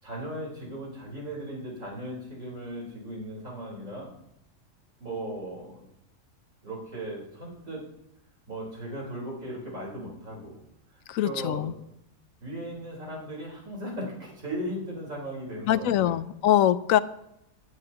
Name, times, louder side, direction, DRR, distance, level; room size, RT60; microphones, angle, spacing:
voice 1, 0.0-4.1 5.0-5.8 6.6-7.8 8.5-10.6 10.9-11.7 12.4-16.2, right 1 dB, 75° right, -3 dB, 4.6 m, -37 dB
voice 2, 11.1-11.7 15.7-17.0, left 11 dB, 75° left, 15 dB, 1.0 m, -23 dB
18.0 x 11.0 x 2.9 m, 0.80 s
omnidirectional pair, 1.4 m